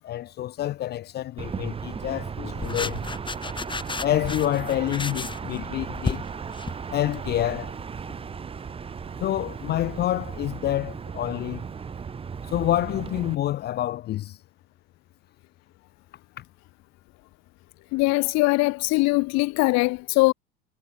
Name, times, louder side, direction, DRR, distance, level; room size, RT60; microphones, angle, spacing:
voice 1, 0.0-3.0 4.0-6.3 6.9-7.7 9.2-11.7 12.4-14.4 16.4-16.5, left 13 dB, 35° left, 0.4 m, -27 dB
sound 1, 1.4-13.3, right 6 dB, 15° right, 0.7 m, -36 dB
sound 2, 2.5-7.3 7.7-8.2, left 4 dB, 15° left, 2.2 m, -33 dB
voice 2, 17.9-20.3, left 24 dB, 55° left, 0.8 m, -21 dB
hypercardioid pair, 90°, 32 cm